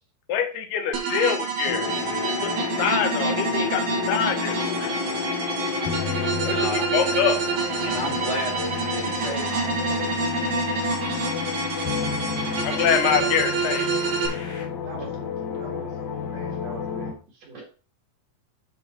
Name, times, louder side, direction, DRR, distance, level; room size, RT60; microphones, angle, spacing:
voice 1, 0.3-1.9 2.3-5.0 6.4-7.4 12.6-13.9, left 8 dB, 85° left, 6 dB, 3.2 m, -25 dB
sound 1, 0.9-14.3, right 4 dB, 80° right, 4.2 m, -27 dB
sound 2, 1.7-17.1, left 7 dB, 60° left, 3.6 m, -31 dB
sound 3, 1.8-14.7, left 3 dB, 40° left, 2.0 m, -41 dB
voice 2, 6.4-7.2 7.8-10.1, equal, 25° left, 0 dB, 1.8 m, -32 dB
voice 3, 14.8-17.6, right 3 dB, 50° right, 0 dB, 2.7 m, -43 dB
10.5 x 4.3 x 4.4 m, 0.36 s
omnidirectional pair, 4.4 m